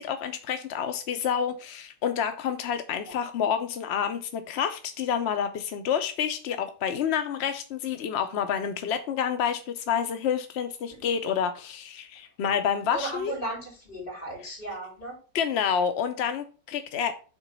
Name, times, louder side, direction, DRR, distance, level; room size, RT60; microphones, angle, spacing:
voice 1, 0.0-13.3 15.3-17.1, left 8 dB, 65° left, 0.6 m, -28 dB
voice 2, 12.9-15.2, right 2 dB, 30° left, 3.6 m, -36 dB
5.9 x 3.9 x 5.4 m
omnidirectional pair, 1.8 m